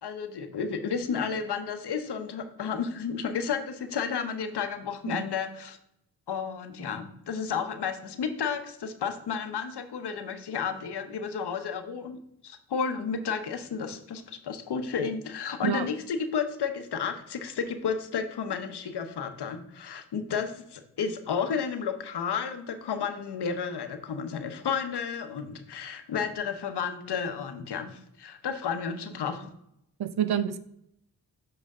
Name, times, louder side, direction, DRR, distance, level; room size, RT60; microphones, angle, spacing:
voice 1, 0.0-5.8 6.3-12.2 12.4-29.5, left 6 dB, 75° left, 8 dB, 1.0 m, -32 dB
voice 2, 30.0-30.6, right 9 dB, 65° right, 13 dB, 0.7 m, -27 dB
7.9 x 5.0 x 3.7 m, 0.76 s
supercardioid pair, 40°, 41 cm